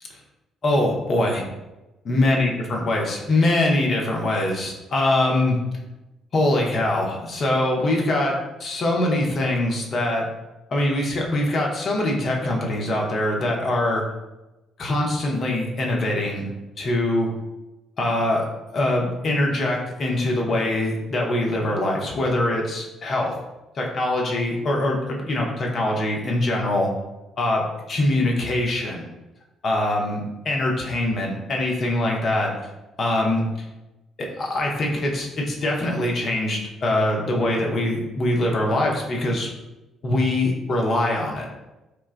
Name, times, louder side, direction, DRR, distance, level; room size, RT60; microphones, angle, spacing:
voice 1, 0.6-1.5 2.0-5.6 6.3-10.3 10.7-14.0 14.8-16.5 16.8-17.3 18.0-18.5 18.7-23.3 23.7-26.9 27.4-29.1 29.6-32.5 33.0-33.5 34.2-39.5 40.0-41.5, left 1 dB, 45° left, -1 dB, 0.6 m, -23 dB
3.1 x 2.2 x 2.4 m, 1.0 s
figure-of-eight pair, 45°, 0 cm